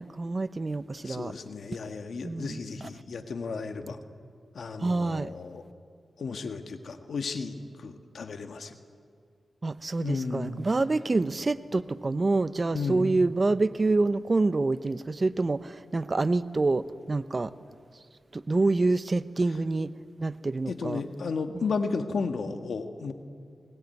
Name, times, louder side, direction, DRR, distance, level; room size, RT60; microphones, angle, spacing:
voice 1, 0.0-1.3 2.2-2.9 4.8-5.3 9.6-17.5 18.3-19.9 20.2-21.0 21.5-21.6, right 3 dB, 40° right, 0.8 m, -27 dB
voice 2, 1.0-4.0 4.5-5.6 6.2-8.8 10.0-10.6 12.7-13.1 20.7-23.1, left 4 dB, 80° left, 1.6 m, -33 dB
21.5 x 20.5 x 9.5 m
cardioid pair, 60°, 0 cm